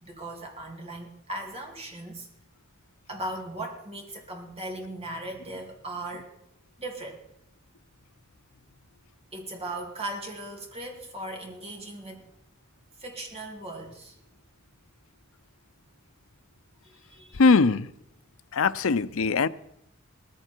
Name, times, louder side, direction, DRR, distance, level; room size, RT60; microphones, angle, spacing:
voice 1, 0.0-2.3 3.1-6.3 6.8-7.2 9.3-12.3 13.0-14.1 16.8-17.4, right 1 dB, 30° right, 1 dB, 2.8 m, -38 dB
voice 2, 17.4-17.9 18.5-19.5, left 4 dB, 80° left, 13 dB, 0.6 m, -21 dB
19.0 x 15.0 x 4.5 m, 0.78 s
head